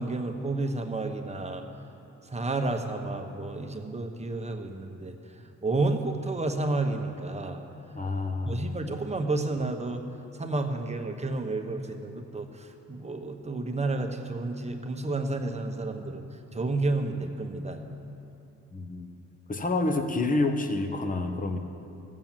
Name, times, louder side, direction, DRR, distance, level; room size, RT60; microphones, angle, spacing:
voice 1, 0.0-1.6 2.3-5.1 5.6-7.6 8.5-10.0 10.4-16.2 16.5-17.9, right 2 dB, 20° right, 5 dB, 1.1 m, -31 dB
voice 2, 7.9-8.7 18.7-19.1 19.5-21.6, left 2 dB, 25° left, 7 dB, 1.1 m, -28 dB
14.5 x 7.4 x 7.4 m, 2.8 s
cardioid pair, 90°, 30 cm